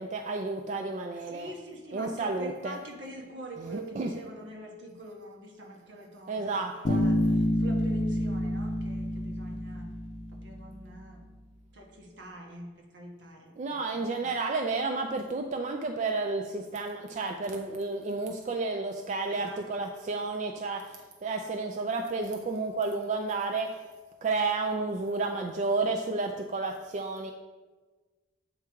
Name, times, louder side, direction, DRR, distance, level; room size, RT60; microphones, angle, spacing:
voice 1, 0.0-1.5 1.9-2.8 3.6-4.1 6.3-7.0 13.6-23.8 24.2-27.3, right 3 dB, 40° right, 4 dB, 0.3 m, -31 dB
voice 2, 1.1-9.9 10.3-11.2 11.7-13.5 13.9-14.3 19.3-19.9, right 1 dB, 70° right, 1 dB, 1.1 m, -45 dB
Bass guitar, 6.8-10.5, equal, 30° left, 0.6 m, -28 dB
7.8 x 3.5 x 4.5 m, 1.3 s
head